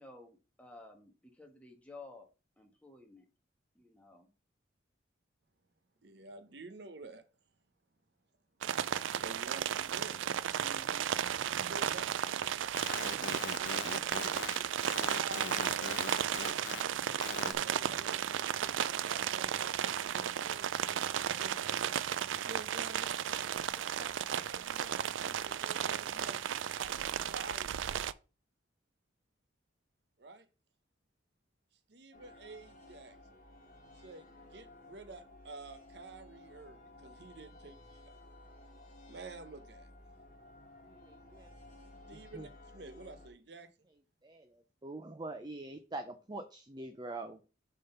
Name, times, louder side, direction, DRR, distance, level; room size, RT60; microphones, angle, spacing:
voice 1, 0.0-2.3 2.6-3.2 3.7-4.3 10.6-11.2 12.9-13.5, left 2 dB, 5° left, 1.2 m, -54 dB
voice 2, 6.0-7.2 9.2-10.3 11.7-12.3 14.7-17.2 17.5-22.0 22.4-23.1 23.7-26.4 26.7-28.1 30.2-30.5 31.9-33.4 34.0-38.1 39.1-39.9 42.1-43.7, right 3 dB, 60° right, 0.8 m, -50 dB
sound 1, 8.6-28.1, right 9 dB, 85° right, 0.4 m, -34 dB
sound 2, 12.5-16.8 17.1-17.5, left 6 dB, 75° left, 0.7 m, -41 dB
sound 3, 32.1-43.3, left 2 dB, 45° left, 1.8 m, -55 dB
voice 3, 40.8-41.5 42.1-42.5 44.2-47.4, right 2 dB, 20° right, 0.5 m, -44 dB
6.5 x 3.8 x 5.6 m
head